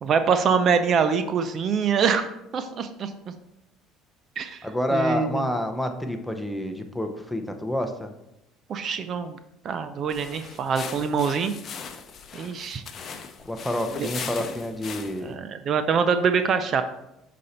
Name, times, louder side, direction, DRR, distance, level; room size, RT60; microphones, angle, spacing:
voice 1, 0.0-3.1 4.4-4.7 4.9-5.4 8.7-9.4 9.6-11.5 12.3-12.8 14.0-14.1 15.2-16.8, right 6 dB, 45° right, 10 dB, 0.5 m, -24 dB
voice 2, 4.6-8.1 13.5-15.4, left 1 dB, 5° left, 6 dB, 0.7 m, -28 dB
sound 1, 10.1-15.3, left 6 dB, 45° left, 0.7 m, -39 dB
6.2 x 4.2 x 4.3 m, 0.86 s
supercardioid pair, 100°, 0 cm